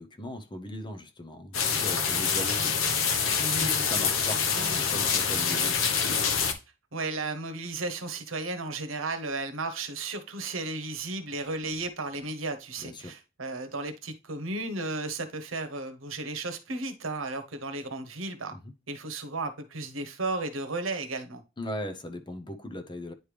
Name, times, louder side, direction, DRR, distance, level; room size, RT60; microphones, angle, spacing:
voice 1, 0.0-5.8 12.8-13.2 18.5-18.7 21.6-23.1, left 1 dB, 25° left, 0.8 m, -39 dB
sound 1, 1.5-6.5, left 6 dB, 80° left, 1.1 m, -26 dB
voice 2, 6.9-18.5 18.9-21.4, right 3 dB, 85° right, 1.1 m, -34 dB
9.6 x 3.4 x 3.3 m
head